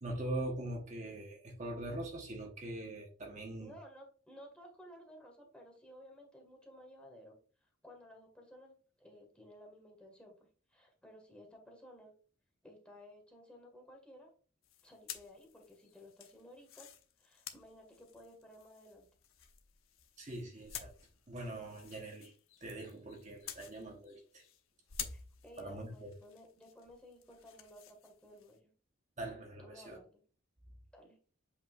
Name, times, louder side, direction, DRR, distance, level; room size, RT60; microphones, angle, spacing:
voice 1, 0.0-3.7 20.2-20.9 21.3-22.3 22.6-24.4 25.6-26.1 29.2-30.0, right 1 dB, 35° right, 1 dB, 1.2 m, -42 dB
voice 2, 3.6-7.4 7.8-10.4 10.7-12.1 12.6-14.3 14.8-16.9 17.2-19.1 25.1-28.7 29.6-30.2 30.9-31.2, equal, 5° left, 0 dB, 1.8 m, -56 dB
sound 1, 14.6-24.6 24.9-28.6, left 9 dB, 85° left, 1.0 m, -51 dB
8.2 x 5.0 x 2.5 m, 0.40 s
head